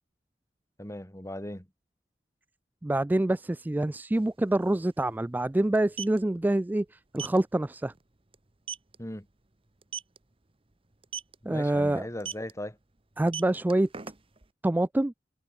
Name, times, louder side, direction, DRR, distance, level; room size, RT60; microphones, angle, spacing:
voice 1, 0.8-1.7 9.0-9.3 11.4-12.8, left 1 dB, 15° left, 2.7 m, -38 dB
voice 2, 2.8-7.9 11.5-12.1 13.2-13.9 14.6-15.1, right 1 dB, 10° right, 0.3 m, -26 dB
sound 1, 4.1-4.2 4.5-4.7 5.7-6.2 7.2-7.4 7.8-8.0 8.3-8.4 8.7-9.0 9.8-10.2 11.0-11.4 12.2-12.5 13.2-14.5, right 7 dB, 30° right, 1.2 m, -37 dB
head